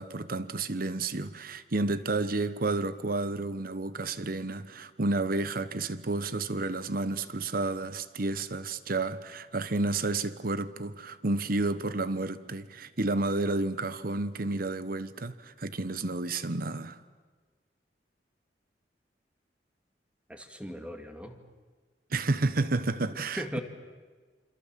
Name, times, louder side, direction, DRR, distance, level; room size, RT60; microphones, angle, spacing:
voice 1, 0.0-17.0 22.1-23.6, right 2 dB, 55° right, 1.1 m, -31 dB
voice 2, 20.3-21.4 23.1-23.6, equal, 5° right, 2.1 m, -38 dB
27.5 x 26.5 x 7.6 m
head